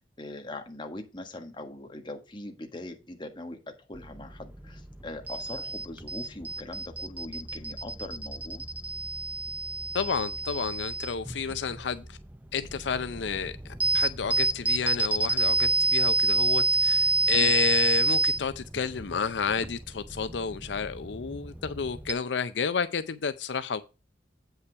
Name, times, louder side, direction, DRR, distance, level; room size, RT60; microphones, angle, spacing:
voice 1, 0.0-8.6 17.3-17.5, left 2 dB, 25° left, 1.5 m, -41 dB
sound 1, 3.9-22.1, right 2 dB, 10° right, 0.5 m, -29 dB
voice 2, 9.9-12.2 12.5-23.8, left 5 dB, 75° left, 0.5 m, -31 dB
8.3 x 5.6 x 4.5 m
head